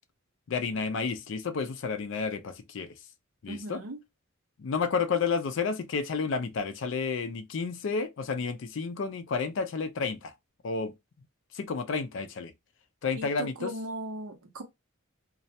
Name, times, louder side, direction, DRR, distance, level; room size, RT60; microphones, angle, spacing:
voice 1, 0.5-3.0 3.4-3.8 4.6-10.3 10.6-10.9 11.5-12.5 13.0-13.7, left 5 dB, 60° left, 0.4 m, -31 dB
voice 2, 3.5-4.0 13.2-14.6, right 1 dB, 85° right, 0.7 m, -38 dB
2.3 x 2.1 x 2.6 m
head